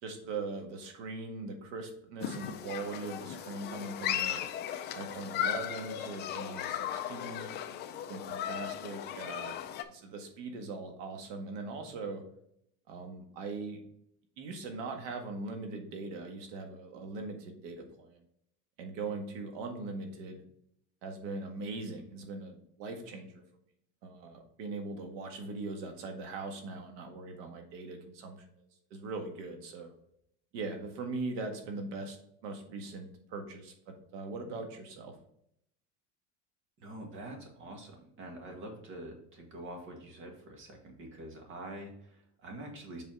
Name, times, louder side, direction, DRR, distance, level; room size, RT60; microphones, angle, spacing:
voice 1, 0.0-4.4 4.9-7.5 8.1-9.6 9.9-12.2 12.9-13.8 14.4-18.2 18.8-20.4 21.0-23.4 24.0-29.9 30.5-32.2 32.4-35.1, right 3 dB, 80° right, 4 dB, 1.8 m, -40 dB
Human group actions, 2.2-9.8, left 10 dB, 30° left, 0.4 m, -36 dB
voice 2, 36.8-43.0, right 1 dB, 35° right, 2 dB, 1.9 m, -45 dB
7.4 x 4.2 x 3.8 m, 0.72 s
cardioid pair, 170°, 36 cm